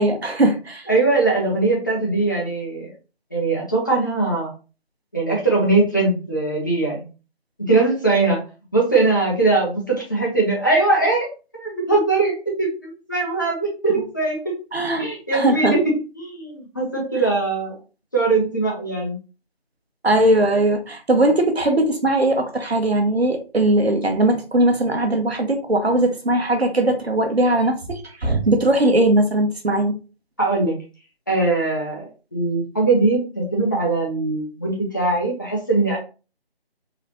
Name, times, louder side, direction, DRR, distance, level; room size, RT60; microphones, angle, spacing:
voice 1, 0.0-0.9 14.7-15.8 20.0-30.0, right 1 dB, 80° right, 5 dB, 1.1 m, -19 dB
voice 2, 0.9-2.9 3.3-4.5 5.1-7.0 7.6-8.4 8.7-14.4 15.0-17.8 18.1-19.2 30.4-30.8 31.3-36.0, right 3 dB, 20° left, -2 dB, 0.7 m, -21 dB
4.0 x 3.0 x 2.7 m, 0.34 s
figure-of-eight pair, 160°, 31 cm